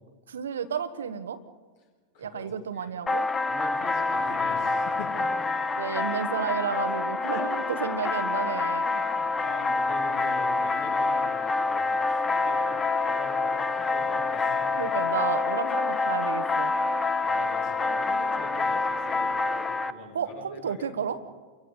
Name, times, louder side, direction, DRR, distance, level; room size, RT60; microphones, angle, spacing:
voice 1, 0.3-1.4 2.2-3.3 5.8-8.9 14.8-16.7 20.1-21.2, right 7 dB, 65° right, 11 dB, 1.2 m, -31 dB
voice 2, 2.1-2.5 2.7-2.9 3.5-5.3 7.3-7.5 8.0-8.1 8.8-14.7 16.8-20.9, left 3 dB, 50° left, 0 dB, 7.5 m, -43 dB
sound 1, 3.1-19.9, left 3 dB, 15° left, 1.0 m, -27 dB
29.0 x 23.5 x 5.1 m, 1.4 s
figure-of-eight pair, 90°, 0 cm